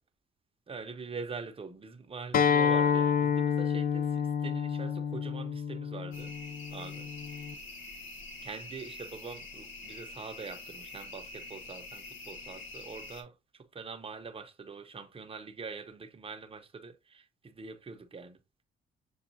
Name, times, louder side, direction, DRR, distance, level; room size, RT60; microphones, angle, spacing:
voice 1, 0.7-6.3 6.7-7.1 8.4-18.4, right 4 dB, 30° right, 0.8 m, -44 dB
Acoustic guitar, 2.3-7.5, left 7 dB, 45° left, 0.5 m, -29 dB
sound 1, 6.1-13.2, left 2 dB, 75° left, 1.3 m, -46 dB
7.1 x 2.4 x 2.7 m
cardioid pair, 90°, 20 cm